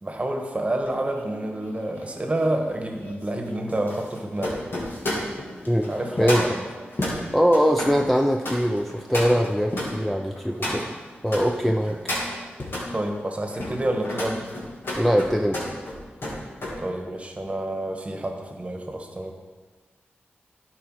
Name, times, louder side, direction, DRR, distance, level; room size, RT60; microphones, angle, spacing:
voice 1, 0.0-4.7 5.9-6.7 12.9-14.4 16.8-19.3, right 1 dB, 30° right, 3 dB, 1.3 m, -28 dB
sound 1, 0.9-11.4 11.8-12.9 13.4-16.8 17.1-17.4, left 1 dB, 65° left, 2.7 m, -33 dB
sound 2, 2.9-3.0 3.3-14.8, left 1 dB, 45° left, 2.1 m, -39 dB
voice 2, 6.2-6.6 7.3-10.9 11.2-12.0 15.0-15.6, equal, ahead, 2 dB, 0.5 m, -22 dB
11.5 x 4.8 x 4.7 m, 1.4 s
cardioid pair, 65°, 4 cm